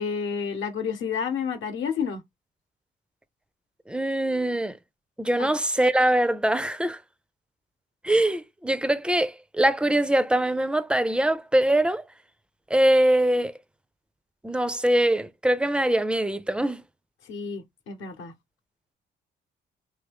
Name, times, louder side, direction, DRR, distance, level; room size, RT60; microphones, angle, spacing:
voice 1, 0.0-2.2 5.4-5.5 17.3-18.3, left 6 dB, 75° left, 0.9 m, -30 dB
voice 2, 3.9-4.8 5.2-7.0 8.0-12.0 12.7-13.5 14.4-16.8, right 1 dB, 5° right, 0.4 m, -23 dB
3.0 x 2.5 x 3.4 m
cardioid pair, 90°, 20 cm